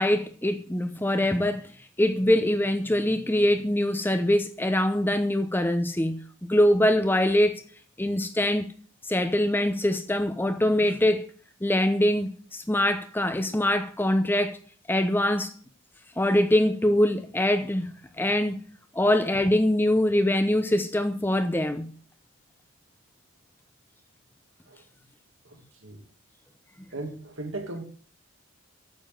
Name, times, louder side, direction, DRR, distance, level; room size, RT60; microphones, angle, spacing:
voice 1, 0.0-1.7 2.0-6.2 6.5-7.6 8.0-8.7 9.1-11.3 11.6-14.6 14.9-15.5 16.2-18.6 18.9-21.9, left 1 dB, 10° left, 0.8 m, -23 dB
voice 2, 25.4-26.0 26.9-27.8, right 2 dB, 75° right, 2.5 m, -37 dB
9.0 x 7.1 x 7.8 m
head